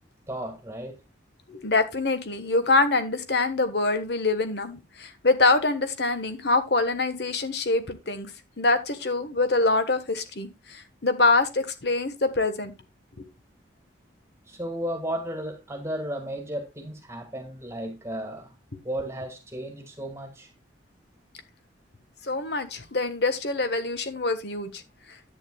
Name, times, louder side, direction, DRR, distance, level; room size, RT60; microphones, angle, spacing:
voice 1, 0.3-0.9 14.5-18.5 18.8-20.5, right 1 dB, 15° right, 1.7 m, -34 dB
voice 2, 1.5-8.3 8.6-12.7 13.2-13.3 22.3-24.8, left 3 dB, 60° left, 1.3 m, -25 dB
10.5 x 8.9 x 2.3 m
head